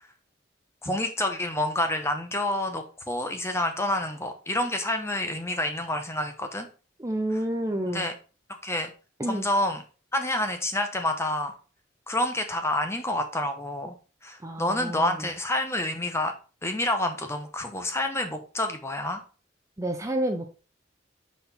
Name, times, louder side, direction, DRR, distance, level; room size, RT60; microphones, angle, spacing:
voice 1, 0.8-6.7 7.9-8.1 8.6-8.9 9.3-9.8 10.1-11.5 12.1-13.9 14.2-16.3 16.6-19.2, left 1 dB, 15° left, 6 dB, 0.8 m, -28 dB
voice 2, 7.0-8.1 9.2-9.4 14.4-15.2 19.8-20.5, right 1 dB, 15° right, 4 dB, 0.6 m, -29 dB
5.8 x 4.3 x 4.2 m, 0.35 s
head